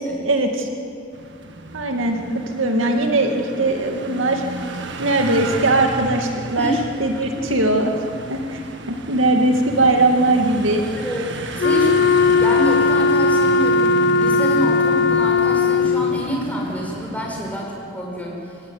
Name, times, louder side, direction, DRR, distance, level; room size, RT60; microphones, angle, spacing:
voice 1, 0.2-0.7 1.7-2.2 2.5-4.4 5.0-6.7 7.0-7.9 8.3-8.6 8.9-10.8, right 2 dB, 85° right, 3 dB, 2.3 m, -19 dB
sound 1, 1.1-17.6, right 2 dB, 65° right, 1.7 m, -33 dB
voice 2, 11.0-12.1 12.4-18.4, equal, 10° left, -2 dB, 6.2 m, -27 dB
Wind instrument woodwind instrument, 11.6-16.3, left 4 dB, 60° left, 0.8 m, -17 dB
26.5 x 16.5 x 9.7 m, 2.4 s
head